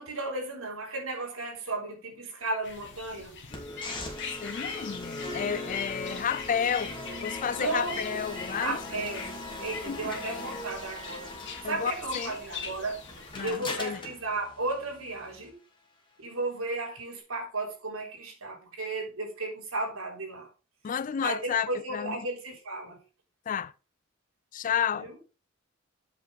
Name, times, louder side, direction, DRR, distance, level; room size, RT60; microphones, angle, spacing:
voice 1, 0.0-3.3 7.6-8.2 8.5-9.3 9.6-11.4 11.6-13.0 13.4-15.6 16.2-20.5 21.2-23.0 25.0-25.1, right 2 dB, 75° right, 3.7 m, -34 dB
sound 1, 2.6-13.5, left 5 dB, 60° left, 2.0 m, -42 dB
sound 2, 3.5-15.5, left 2 dB, 25° left, 2.7 m, -40 dB
voice 2, 4.4-9.1 9.9-10.1 11.6-12.3 13.4-14.0 20.8-22.3 23.5-23.7 24.5-25.1, left 8 dB, 40° left, 0.3 m, -31 dB
8.4 x 6.1 x 4.9 m
head